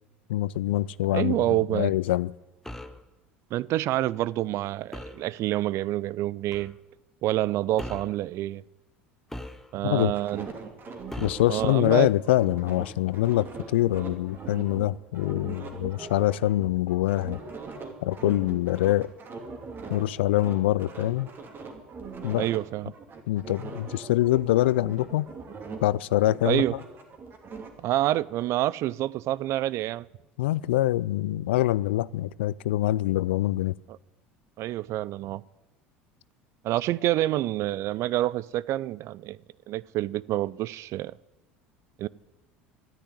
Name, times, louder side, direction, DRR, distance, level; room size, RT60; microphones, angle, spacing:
voice 1, 0.3-1.4 1.7-2.3 9.8-10.1 11.2-17.4 18.0-19.1 19.9-21.3 22.2-22.5 23.3-25.3 25.8-26.6 30.4-33.7, left 15 dB, 75° left, 0.4 m, -24 dB
voice 2, 1.1-1.9 3.5-6.7 7.2-8.6 9.7-10.5 11.5-12.1 22.4-22.9 26.4-26.7 27.8-30.1 34.6-35.4 36.6-39.4 39.7-41.1 42.0-42.1, right 15 dB, 50° right, 0.5 m, -27 dB
sound 1, 2.7-3.0 4.9-5.3 6.5-6.7 7.8-8.2 9.3-10.0 11.1-11.5, left 1 dB, 5° left, 1.2 m, -39 dB
sound 2, 10.0-14.8 15.1-20.1 20.3-22.6 22.9-25.9 26.2-27.7, right 4 dB, 35° right, 2.8 m, -41 dB
12.5 x 10.0 x 9.6 m
hypercardioid pair, 75°, 6 cm